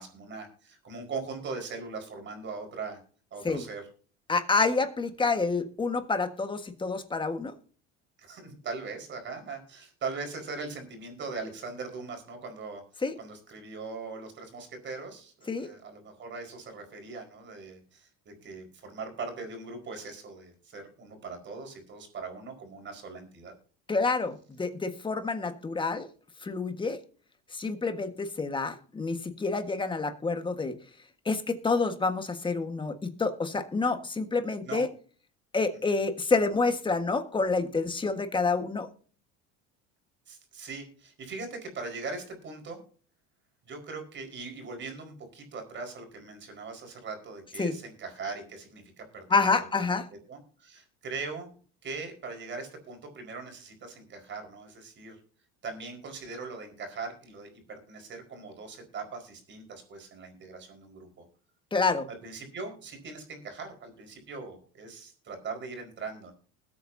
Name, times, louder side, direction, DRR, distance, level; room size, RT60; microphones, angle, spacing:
voice 1, 0.0-3.0 3.3-3.9 8.2-23.5 34.6-34.9 35.9-36.0 40.3-42.8 43.6-50.0 50.3-55.2 55.6-61.2 62.2-66.3, right 4 dB, 35° right, 4 dB, 4.7 m, -40 dB
voice 2, 4.3-7.5 13.0-13.1 15.5-15.7 23.9-26.1 26.4-27.0 27.5-30.8 31.2-32.9 33.2-34.9 35.5-38.9 47.6-47.7 49.3-50.0 61.7-62.1, left 4 dB, 15° left, 8 dB, 1.5 m, -28 dB
21.0 x 8.5 x 2.7 m, 0.42 s
cardioid pair, 145°, 32 cm